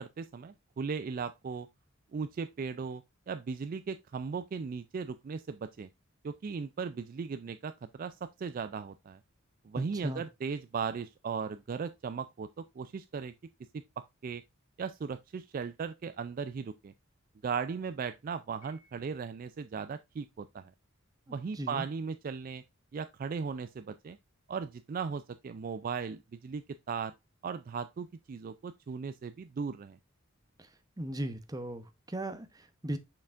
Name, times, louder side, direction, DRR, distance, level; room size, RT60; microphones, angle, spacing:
voice 1, 0.0-1.7 2.1-5.9 6.2-9.2 9.6-13.3 14.0-14.4 14.8-16.9 17.4-20.7 21.3-22.6 22.9-24.2 24.5-27.1 27.4-30.0, right 5 dB, 40° right, 0.3 m, -37 dB
voice 2, 9.7-10.2 21.3-21.8 30.6-30.7 31.0-33.0, right 1 dB, 20° right, 0.8 m, -38 dB
Piano, 18.6-19.5, left 2 dB, 70° left, 3.9 m, -63 dB
6.6 x 5.9 x 2.4 m
head